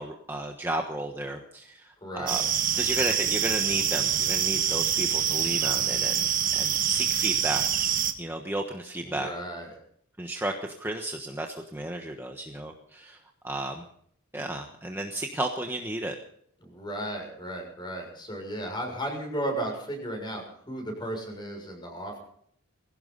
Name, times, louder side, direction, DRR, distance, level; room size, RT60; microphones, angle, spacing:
voice 1, 0.0-2.4 2.7-7.7 8.2-9.3 10.2-13.8 14.3-16.2, right 1 dB, 10° right, 2 dB, 1.3 m, -33 dB
voice 2, 2.0-2.4 9.0-9.7 16.6-22.2, right 1 dB, 20° left, 3 dB, 6.6 m, -35 dB
sound 1, 2.3-8.1, right 9 dB, 40° right, 1.5 m, -26 dB
21.5 x 17.0 x 4.0 m, 0.64 s
head